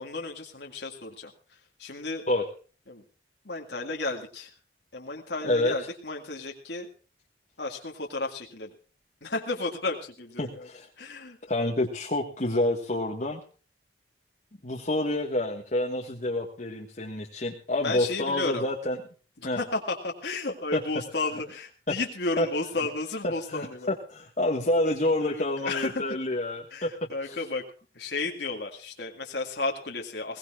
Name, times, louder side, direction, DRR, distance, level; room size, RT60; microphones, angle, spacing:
voice 1, 0.0-2.3 2.9-3.0 3.4-4.5 4.9-6.9 7.6-8.7 9.2-10.7 11.0-11.4 17.8-18.7 19.5-23.9 25.2-26.0 26.7-27.7 27.9-30.4, left 3 dB, 70° left, 1 dB, 2.0 m, -33 dB
voice 2, 10.4-10.9 11.5-13.4 14.6-19.0 19.4-19.6 20.7-20.8 22.4-22.5 23.5-26.9 27.2-27.4, left 1 dB, 45° left, 0 dB, 1.6 m, -28 dB
21.5 x 17.5 x 2.4 m, 0.38 s
head